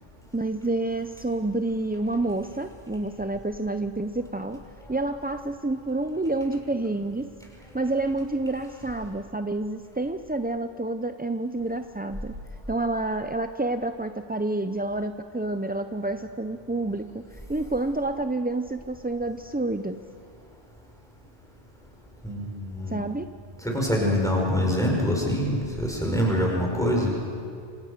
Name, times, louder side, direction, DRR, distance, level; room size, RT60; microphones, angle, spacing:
voice 1, 0.3-4.6 4.9-7.3 7.7-12.4 12.7-20.0 22.9-23.3, right 2 dB, 15° right, 8 dB, 0.4 m, -29 dB
voice 2, 22.2-23.0 23.6-27.1, equal, 5° left, -2 dB, 5.8 m, -25 dB
28.5 x 25.0 x 6.7 m, 2.4 s
omnidirectional pair, 1.1 m